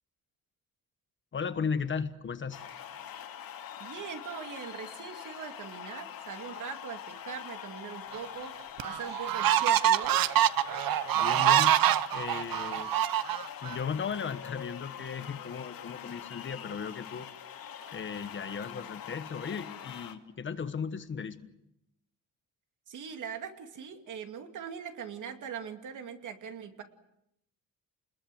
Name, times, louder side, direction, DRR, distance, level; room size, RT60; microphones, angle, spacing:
voice 1, 1.3-2.6 11.1-11.8 12.1-12.9 13.6-17.3 17.9-21.5, left 6 dB, 35° left, 10 dB, 1.2 m, -36 dB
sound 1, 2.5-20.1, left 9 dB, 90° left, 2.6 m, -44 dB
voice 2, 3.8-8.6 8.8-10.2 22.9-26.8, right 7 dB, 60° right, 6 dB, 2.7 m, -41 dB
sound 2, 8.1-8.2 8.8-13.8, right 12 dB, 85° right, 0.9 m, -25 dB
29.5 x 21.0 x 7.9 m, 0.81 s
wide cardioid pair, 175°, 34 cm